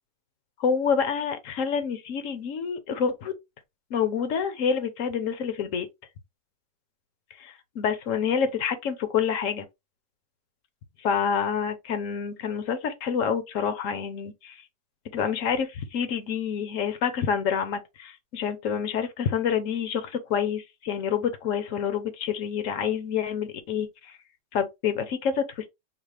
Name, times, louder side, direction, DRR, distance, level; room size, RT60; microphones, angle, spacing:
voice 1, 0.6-3.3 3.9-5.9 7.4-9.7 11.0-14.6 15.1-24.2 24.5-25.7, left 7 dB, 60° left, 0.9 m, -27 dB
4.9 x 2.0 x 3.3 m
omnidirectional pair, 1.9 m